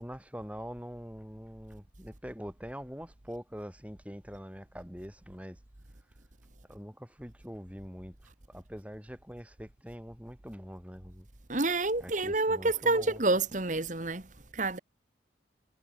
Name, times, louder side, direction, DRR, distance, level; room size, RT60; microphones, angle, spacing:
voice 1, 0.0-5.6 6.7-11.3 12.0-13.2, equal, 5° right, 7.9 m, -44 dB
voice 2, 11.5-14.2 14.5-14.8, right 2 dB, 40° right, 1.6 m, -28 dB
head